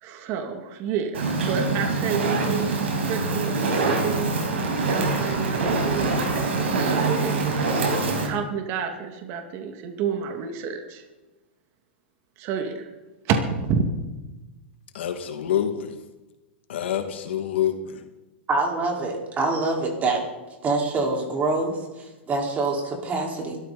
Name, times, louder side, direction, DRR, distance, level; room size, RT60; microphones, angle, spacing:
voice 1, 0.0-2.7 3.0-4.4 4.9-7.7 8.2-11.0 12.4-12.9 13.2-13.8, right 6 dB, 45° right, 4 dB, 2.4 m, -30 dB
Fire, 1.1-8.3, right 3 dB, 80° right, 5.7 m, -24 dB
voice 2, 14.9-16.0 16.7-18.0, left 10 dB, 75° left, 6 dB, 2.4 m, -26 dB
voice 3, 18.5-20.2 20.6-23.6, right 3 dB, 25° right, 0 dB, 5.2 m, -25 dB
23.5 x 14.0 x 4.4 m, 1.1 s
hypercardioid pair, 125°, 6 cm